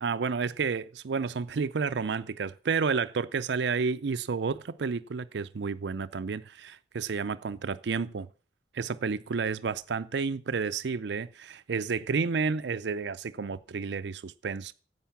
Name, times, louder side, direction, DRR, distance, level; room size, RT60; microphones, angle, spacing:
voice 1, 0.0-8.3 8.7-14.7, right 5 dB, 70° right, 0.5 m, -31 dB
10.5 x 8.2 x 7.1 m
head